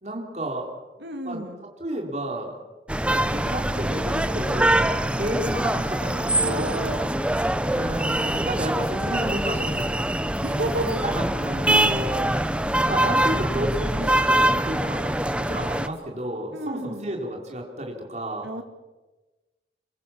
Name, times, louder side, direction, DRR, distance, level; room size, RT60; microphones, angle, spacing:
voice 1, 0.0-0.7 1.2-1.4 1.8-2.6 3.0-6.8 7.7-10.1 11.0-12.3 12.8-18.5, right 1 dB, 40° right, 1 dB, 4.3 m, -31 dB
voice 2, 1.0-1.6 6.4-7.1 10.4-11.0 16.5-17.1 18.4-18.6, right 1 dB, 70° right, 4 dB, 2.2 m, -31 dB
sound 1, 2.9-15.9, right 1 dB, 5° right, 0.8 m, -24 dB
26.0 x 23.0 x 7.3 m, 1.2 s
head